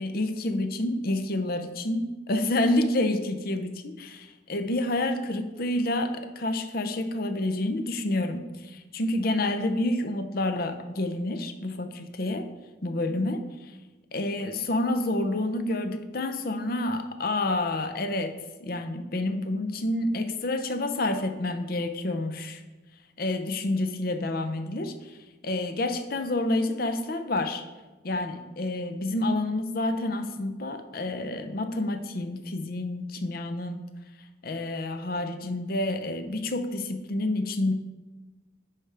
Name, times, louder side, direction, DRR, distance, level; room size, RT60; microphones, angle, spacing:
voice 1, 0.0-12.5 12.8-13.7 14.1-18.4 18.6-22.6 23.2-25.2 25.4-27.6 28.0-33.8 34.4-37.7, left 2 dB, 50° left, 8 dB, 0.6 m, -28 dB
10.0 x 4.9 x 3.4 m, 1.2 s
head